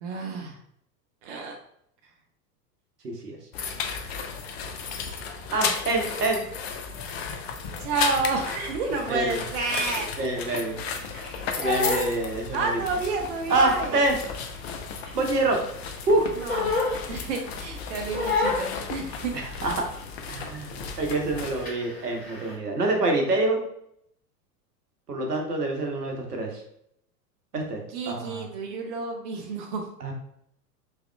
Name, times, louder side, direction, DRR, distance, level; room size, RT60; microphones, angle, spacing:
voice 1, 0.0-0.6 1.2-1.6 7.8-10.1 12.5-14.0 16.4-16.8 17.1-19.3 27.9-29.9, right 4 dB, 45° right, 2 dB, 0.6 m, -30 dB
voice 2, 3.0-3.4 5.5-6.4 9.1-9.4 10.2-10.8 11.6-12.8 13.5-14.2 15.1-15.6 16.1-16.3 19.3-19.9 20.3-23.6 25.1-26.6 27.5-28.5 30.0-30.1, right 2 dB, 75° right, 2 dB, 0.9 m, -26 dB
sound 1, 3.5-21.7, left 6 dB, 45° left, 0.5 m, -34 dB
Crying sobbing, 10.4-13.0 13.3-15.6 15.9-17.6 18.1-20.1 20.3-20.7 20.9-22.5, left 3 dB, 20° left, 1.4 m, -31 dB
3.5 x 3.4 x 2.2 m, 0.72 s
figure-of-eight pair, 90°, 47 cm